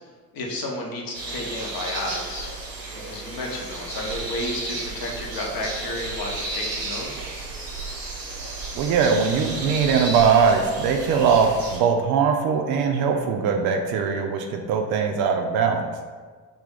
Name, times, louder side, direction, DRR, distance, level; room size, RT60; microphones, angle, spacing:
voice 1, 0.3-2.6 2.9-7.2, left 1 dB, 45° left, -1 dB, 0.8 m, -32 dB
sound 1, 1.1-11.8, right 2 dB, 85° right, 0.8 m, -33 dB
voice 2, 8.7-15.9, right 6 dB, 50° right, 4 dB, 0.5 m, -21 dB
3.3 x 2.4 x 3.8 m, 1.5 s
figure-of-eight pair, 50°, 49 cm